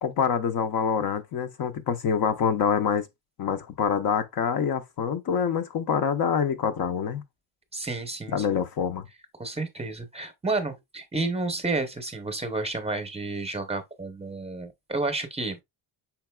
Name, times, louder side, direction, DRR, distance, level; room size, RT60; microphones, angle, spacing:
voice 1, 0.0-3.1 3.4-7.2 8.3-9.1, left 7 dB, 50° left, 0.6 m, -26 dB
voice 2, 7.7-8.5 9.4-15.6, right 3 dB, 15° right, 0.7 m, -31 dB
5.8 x 3.9 x 2.2 m
cardioid pair, 140°, 45 cm